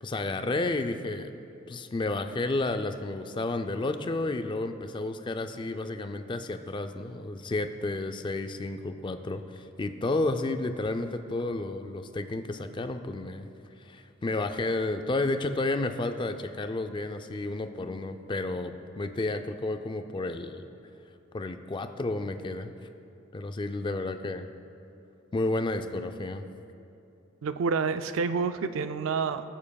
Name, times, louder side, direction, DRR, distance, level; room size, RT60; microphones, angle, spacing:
voice 1, 0.0-1.3 1.7-13.5 13.8-20.7 21.3-22.7 23.3-24.5 25.3-26.4, left 2 dB, 25° left, 8 dB, 0.4 m, -31 dB
voice 2, 27.4-29.4, right 5 dB, 80° right, 10 dB, 0.4 m, -28 dB
22.0 x 7.3 x 2.3 m, 2.7 s
head